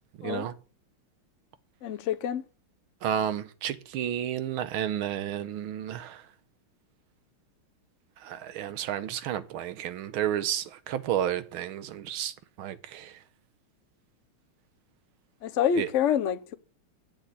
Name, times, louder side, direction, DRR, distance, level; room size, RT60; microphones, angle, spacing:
voice 1, 0.2-0.5 3.0-6.2 8.2-13.2 15.8-15.9, right 10 dB, 75° right, 1.6 m, -31 dB
voice 2, 1.8-2.4 15.4-16.5, left 8 dB, 80° left, 0.6 m, -27 dB
9.8 x 7.2 x 8.2 m
omnidirectional pair, 2.4 m